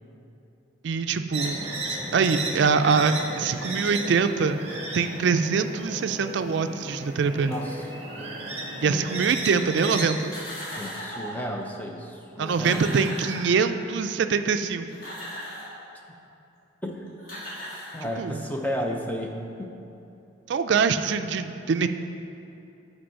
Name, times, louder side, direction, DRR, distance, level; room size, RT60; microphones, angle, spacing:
voice 1, 0.8-1.6 1.9-4.6 4.9-7.5 8.8-10.3 12.4-14.9 18.2-18.4 20.5-21.9, right 5 dB, 65° right, 9 dB, 0.3 m, -24 dB
sound 1, 1.3-10.0, right 2 dB, 30° right, 1.0 m, -34 dB
voice 2, 7.4-7.9 8.2-8.4 8.8-9.3 10.8-12.8 16.8-17.1 17.9-19.8, equal, 10° left, 1 dB, 0.5 m, -33 dB
sound 2, 10.2-11.5 12.1-12.2 12.4-14.0 14.7-15.8 16.9-17.0 17.2-18.4, equal, 45° left, 1.7 m, -38 dB
7.8 x 4.6 x 5.6 m, 2.8 s
head